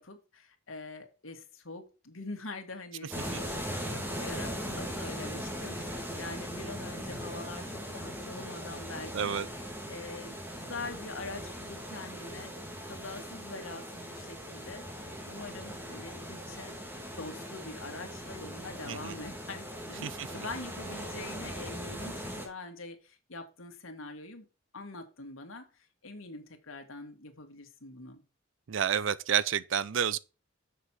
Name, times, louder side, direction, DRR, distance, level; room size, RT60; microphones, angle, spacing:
voice 1, 0.0-9.4 9.9-12.5 12.8-16.7 17.2-24.5 24.7-25.7 26.0-28.2, left 3 dB, 85° left, 2.1 m, -44 dB
sound 1, 3.1-22.5, equal, 10° right, 2.3 m, -40 dB
voice 2, 9.1-9.5 18.8-19.2 20.0-20.3 28.7-30.2, right 8 dB, 70° right, 0.5 m, -30 dB
7.3 x 6.6 x 4.6 m
head